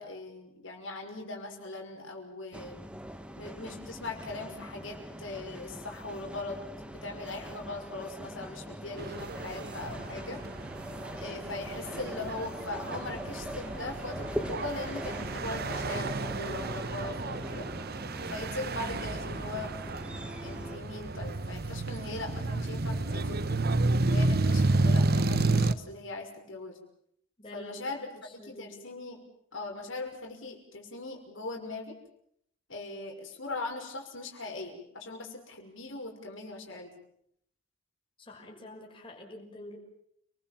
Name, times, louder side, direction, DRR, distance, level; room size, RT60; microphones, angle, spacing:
voice 1, 0.0-2.9 3.4-10.4 11.2-17.7 18.3-19.7 20.4-23.6 24.1-26.8 27.5-29.2 29.5-31.9 32.7-36.9, left 2 dB, 70° left, 1 dB, 6.1 m, -40 dB
sound 1, 2.5-20.8, equal, 5° right, 1.9 m, -42 dB
sound 2, 9.0-25.7, right 2 dB, 50° right, 1.1 m, -31 dB
voice 2, 27.4-27.9 28.2-28.8 38.2-39.8, left 1 dB, 25° left, 0 dB, 6.2 m, -47 dB
29.5 x 21.5 x 7.6 m, 0.71 s
head